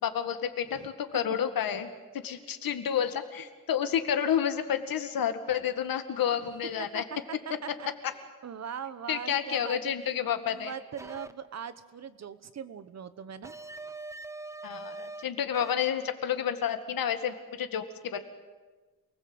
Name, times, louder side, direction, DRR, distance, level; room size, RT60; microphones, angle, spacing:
voice 1, 0.0-1.9 2.1-7.0 9.1-10.7 14.6-17.8 18.1-18.2, left 9 dB, 85° left, 9 dB, 2.0 m, -30 dB
voice 2, 6.8-9.9 10.3-13.5, right 7 dB, 50° right, 13 dB, 1.2 m, -41 dB
sound 1, 11.0-11.3 13.4-15.2 15.5-15.9, right 3 dB, 10° right, 0.8 m, -42 dB
28.0 x 20.0 x 8.0 m, 1.3 s
wide cardioid pair, 160°, 34 cm